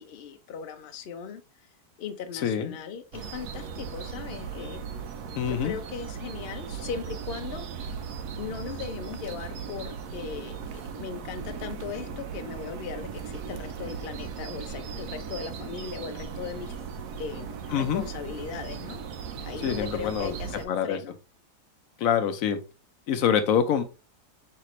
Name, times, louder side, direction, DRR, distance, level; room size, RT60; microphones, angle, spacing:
voice 1, 0.0-1.7 2.0-5.0 5.3-8.0 8.4-16.7 17.2-19.0 19.4-21.2, left 7 dB, 85° left, 7 dB, 0.5 m, -38 dB
voice 2, 2.4-2.8 5.4-5.8 17.7-18.0 19.6-20.3 20.7-21.0 22.0-22.6 23.1-23.8, left 8 dB, 70° left, 9 dB, 0.9 m, -25 dB
sound 1, 3.1-20.7, right 6 dB, 80° right, 1.1 m, -37 dB
3.8 x 3.3 x 3.0 m, 0.31 s
omnidirectional pair, 1.7 m